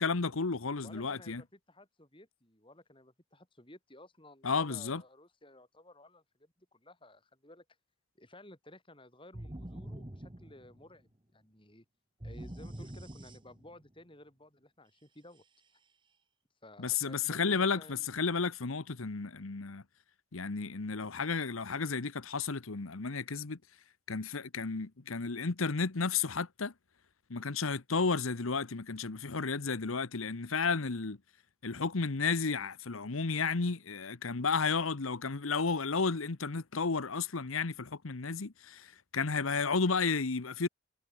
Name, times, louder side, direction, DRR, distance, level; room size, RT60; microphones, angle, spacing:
voice 1, 0.0-1.4 4.4-5.0 16.8-19.8 20.3-23.6 24.1-26.7 27.3-31.2 31.6-40.7, left 4 dB, 90° left, 1.1 m, -32 dB
voice 2, 0.8-7.7 8.2-11.9 12.2-15.4 16.6-18.1 18.4-18.5, left 1 dB, 25° left, 7.1 m, -55 dB
sound 1, 9.3-11.1 12.2-13.9, right 1 dB, 25° right, 1.2 m, -45 dB
head